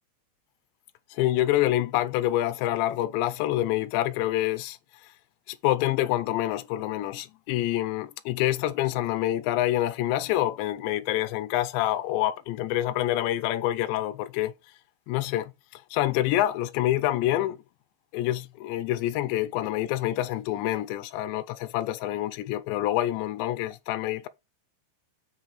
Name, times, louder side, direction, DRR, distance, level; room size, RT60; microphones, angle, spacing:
voice 1, 1.1-4.8 5.5-14.5 15.1-17.6 18.1-24.3, left 14 dB, 80° left, 3.1 m, -27 dB
8.1 x 6.1 x 6.7 m
omnidirectional pair, 5.3 m